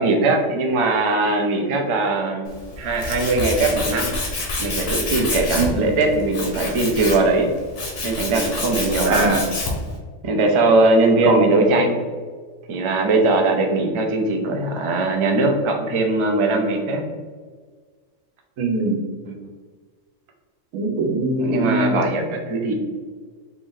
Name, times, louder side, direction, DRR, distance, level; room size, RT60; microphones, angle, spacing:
voice 1, 0.0-2.5 2.8-4.1 4.6-7.5 8.0-9.4 10.2-12.0 12.7-17.0 19.3-19.4 21.4-22.7, right 2 dB, 45° right, 2 dB, 0.3 m, -20 dB
Tools, 2.5-9.9, left 2 dB, 65° left, 1.3 m, -28 dB
voice 2, 9.1-9.4 11.3-11.4 18.6-19.0 20.7-22.0, right 2 dB, 85° right, 3 dB, 1.1 m, -21 dB
4.6 x 2.6 x 3.7 m, 1.5 s
omnidirectional pair, 1.4 m